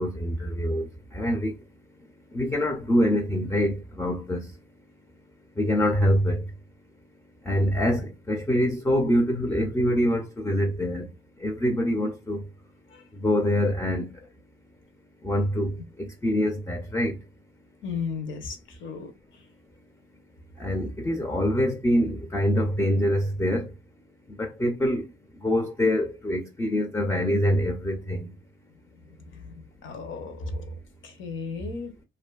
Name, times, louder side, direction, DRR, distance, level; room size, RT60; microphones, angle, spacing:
voice 1, 0.0-1.5 2.3-4.5 5.6-6.4 7.5-11.1 11.4-12.5 13.1-14.1 15.2-17.2 20.6-23.7 24.3-25.1 25.4-28.3, equal, 10° left, 0.4 m, -25 dB
voice 2, 17.8-19.1 29.4-30.6 31.0-31.9, left 4 dB, 75° left, 0.8 m, -34 dB
2.5 x 2.4 x 2.3 m
cardioid pair, 90°, 20 cm